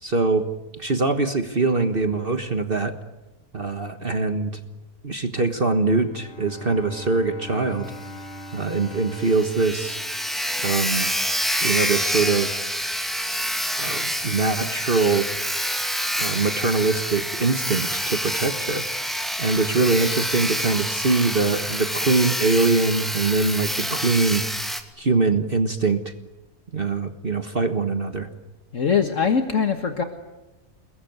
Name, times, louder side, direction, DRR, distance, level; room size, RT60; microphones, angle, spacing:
voice 1, 0.0-0.5 0.8-2.9 3.5-4.5 5.0-7.9 8.5-10.0 10.6-11.1 11.6-12.6 13.8-15.3 16.2-18.8 19.4-24.4 25.0-26.1 26.7-28.3, right 3 dB, 40° right, 8 dB, 1.6 m, -23 dB
Bowed string instrument, 5.9-10.8, equal, 40° left, 2.0 m, -42 dB
Sawing, 7.9-8.0 8.3-8.4 8.8-8.9 9.1-24.8, equal, ahead, 2.4 m, -27 dB
voice 2, 28.7-30.0, left 6 dB, 55° left, 6 dB, 1.8 m, -22 dB
29.0 x 21.0 x 9.4 m, 1.0 s
omnidirectional pair, 1.6 m